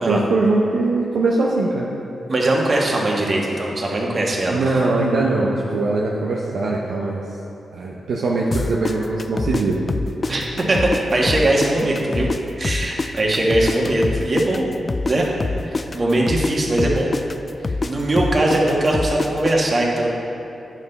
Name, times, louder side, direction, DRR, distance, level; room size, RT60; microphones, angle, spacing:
voice 1, 0.1-1.9 4.5-7.2 7.7-9.8, right 3 dB, 80° right, -4 dB, 0.7 m, -21 dB
voice 2, 2.3-4.6 10.3-12.3 12.6-14.6 15.0-15.3 15.7-17.1 17.8-20.1, right 1 dB, 50° right, -2 dB, 1.5 m, -20 dB
sound 1, 8.5-11.0 11.3-15.1 15.4-19.5, left 3 dB, 45° left, 0.3 m, -25 dB
9.0 x 5.8 x 4.1 m, 2.8 s
supercardioid pair, 45°, 0 cm